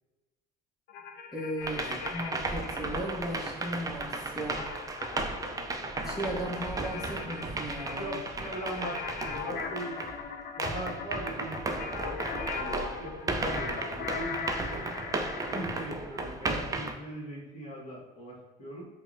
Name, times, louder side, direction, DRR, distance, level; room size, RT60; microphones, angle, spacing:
sound 1, 0.9-3.0 4.6-15.7, left 6 dB, 50° left, 0.5 m, -40 dB
voice 1, 1.3-4.7 6.0-8.2 15.5-15.7, equal, ahead, -6 dB, 0.8 m, -36 dB
sound 2, 1.6-10.2 10.6-16.9, right 2 dB, 15° right, 0.4 m, -35 dB
voice 2, 8.0-10.0 10.6-12.2 12.5-15.0 15.4-18.9, right 1 dB, 30° left, -3 dB, 1.4 m, -40 dB
5.4 x 2.1 x 2.5 m, 1.1 s
supercardioid pair, 80°, 21 cm